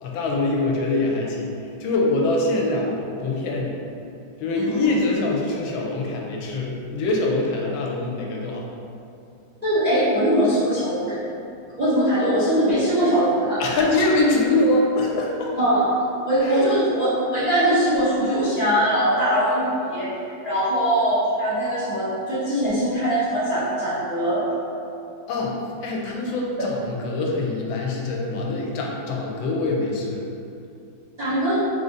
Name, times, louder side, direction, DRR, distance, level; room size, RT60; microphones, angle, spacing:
voice 1, 0.0-3.8 4.4-8.7 13.6-15.6 16.4-16.7 25.3-30.2, left 2 dB, 85° left, -1 dB, 1.4 m, -24 dB
voice 2, 9.6-11.1 11.8-13.6 15.6-17.1 17.3-20.1 20.4-24.5 26.2-26.3 31.2-31.6, equal, 25° right, -14 dB, 1.1 m, -21 dB
3.8 x 2.5 x 3.9 m, 2.6 s
omnidirectional pair, 2.1 m